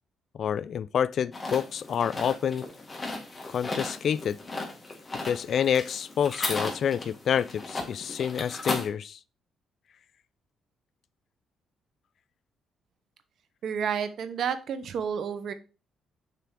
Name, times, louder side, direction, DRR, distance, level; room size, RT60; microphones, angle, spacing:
voice 1, 0.4-2.6 3.5-4.4 5.2-9.2, left 8 dB, 60° left, 0.3 m, -28 dB
sound 1, 1.3-8.9, left 2 dB, 25° left, 1.6 m, -36 dB
voice 2, 13.6-15.5, right 7 dB, 65° right, 0.8 m, -30 dB
6.8 x 3.4 x 4.7 m
cardioid pair, 90°, 0 cm